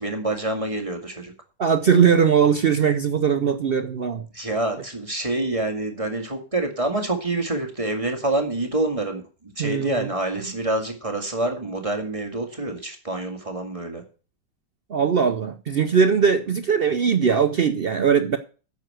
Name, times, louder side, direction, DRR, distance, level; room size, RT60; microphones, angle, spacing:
voice 1, 0.0-1.3 4.3-14.0, right 2 dB, 20° right, 2.0 m, -27 dB
voice 2, 1.6-4.3 9.6-10.1 14.9-18.4, right 6 dB, 80° right, 0.5 m, -20 dB
9.3 x 6.9 x 7.7 m
omnidirectional pair, 1.9 m